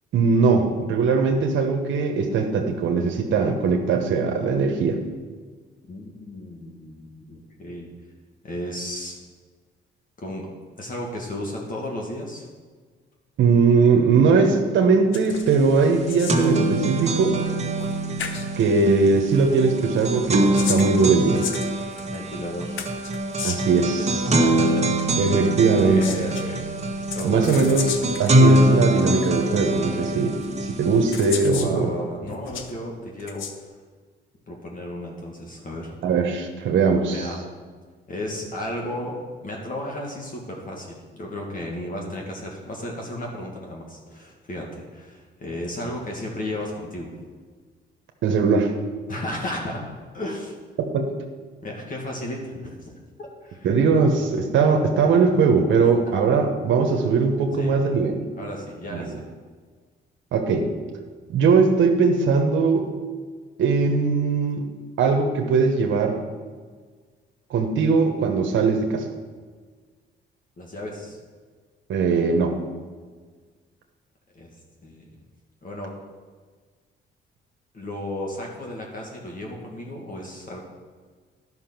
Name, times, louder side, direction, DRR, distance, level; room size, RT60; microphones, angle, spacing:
voice 1, 0.1-5.0 13.4-17.4 18.6-21.5 23.4-24.3 25.2-26.0 27.2-27.9 28.2-30.3 30.6-31.9 36.0-37.3 48.2-48.7 50.8-51.1 53.6-58.3 58.9-59.0 60.3-60.7 61.3-62.9 63.6-64.7 65.0-66.2 67.5-69.1 71.9-72.5, right 4 dB, 75° right, 3 dB, 1.1 m, -20 dB
voice 2, 5.8-7.9 8.4-9.2 10.2-10.5 10.8-12.5 22.1-22.8 24.3-24.8 25.1-25.3 25.9-26.7 27.1-27.6 29.9-30.1 31.5-33.5 34.5-35.9 37.1-37.4 38.1-39.2 39.4-47.2 49.1-49.8 50.1-50.5 51.6-53.7 54.1-54.2 57.6-57.9 58.4-59.2 70.6-71.2 74.3-74.5 74.8-75.1 75.6-75.9 77.7-80.6, left 1 dB, 45° left, -1 dB, 1.9 m, -34 dB
sound 1, 15.1-15.6 15.8-16.5 17.8-17.9 18.2-18.5 20.2-22.2 22.8-23.8 25.7-26.5 27.1-28.3 29.2-29.3 30.4-30.5 31.1-31.7 32.2-32.7 33.2-33.5, left 7 dB, 75° left, 1.0 m, -33 dB
sound 2, 15.4-15.5 15.8-31.3, right 1 dB, 35° right, 1.5 m, -23 dB
11.0 x 5.9 x 6.0 m, 1.5 s
cardioid pair, 90°, 20 cm